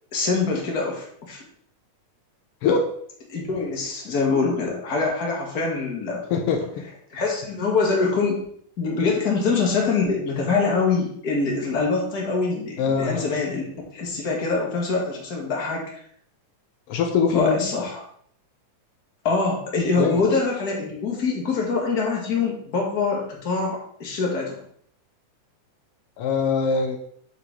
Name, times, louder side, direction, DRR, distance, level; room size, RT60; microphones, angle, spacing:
voice 1, 0.1-1.4 3.3-6.2 7.1-8.4 8.8-13.7 13.9-15.8 17.3-18.0 19.2-24.6, left 4 dB, 35° left, -1 dB, 1.8 m, -24 dB
voice 2, 6.3-6.8 12.8-13.3 16.9-17.7 20.0-20.2 26.2-27.0, left 5 dB, 85° left, 3 dB, 1.2 m, -23 dB
8.0 x 6.0 x 3.8 m, 0.64 s
omnidirectional pair, 3.6 m